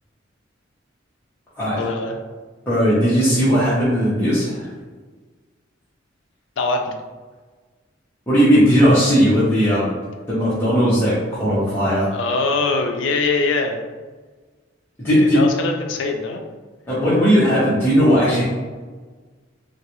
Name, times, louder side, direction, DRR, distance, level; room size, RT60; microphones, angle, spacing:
voice 1, 1.8-2.1 6.6-7.0 12.1-13.8 15.2-16.4, left 3 dB, 75° left, 4 dB, 0.4 m, -22 dB
voice 2, 2.7-4.7 8.3-9.9 10.3-12.1 15.0-15.4 16.9-18.4, equal, 10° left, -11 dB, 0.8 m, -17 dB
3.7 x 2.3 x 2.9 m, 1.4 s
head